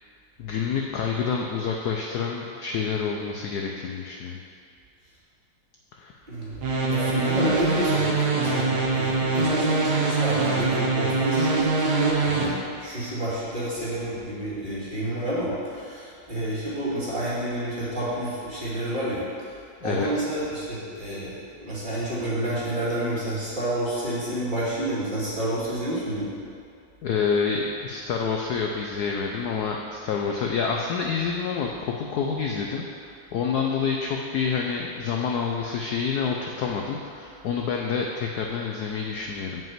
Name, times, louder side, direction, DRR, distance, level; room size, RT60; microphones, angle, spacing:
voice 1, 0.4-4.4 6.0-6.1 19.8-20.1 27.0-39.6, left 6 dB, 70° left, 0 dB, 1.0 m, -28 dB
voice 2, 6.3-26.3, right 1 dB, 25° right, -9 dB, 2.3 m, -29 dB
sound 1, 6.6-12.4, right 3 dB, 55° right, 1.5 m, -24 dB
7.7 x 5.4 x 7.4 m, 2.3 s
omnidirectional pair, 2.2 m